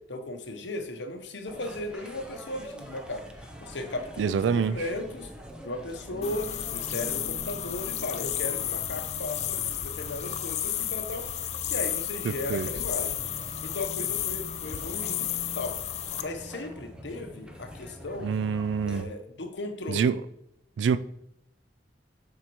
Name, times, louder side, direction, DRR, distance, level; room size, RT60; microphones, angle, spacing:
voice 1, 0.1-5.3 5.6-11.3 11.7-13.2 13.6-15.3 15.5-15.8 16.2-18.3 18.8-20.1, left 2 dB, 75° left, 6 dB, 0.9 m, -36 dB
sound 1, 1.5-19.0, equal, 5° right, 0.6 m, -45 dB
voice 2, 4.2-4.8 12.2-12.7 18.2-19.1 19.9-20.2 20.8-21.0, right 6 dB, 75° right, 13 dB, 0.3 m, -26 dB
sound 2, 6.1-12.0, right 2 dB, 20° right, 1.5 m, -49 dB
sound 3, 6.2-16.2, left 11 dB, 40° left, 0.4 m, -32 dB
7.4 x 5.1 x 3.0 m, 0.78 s
head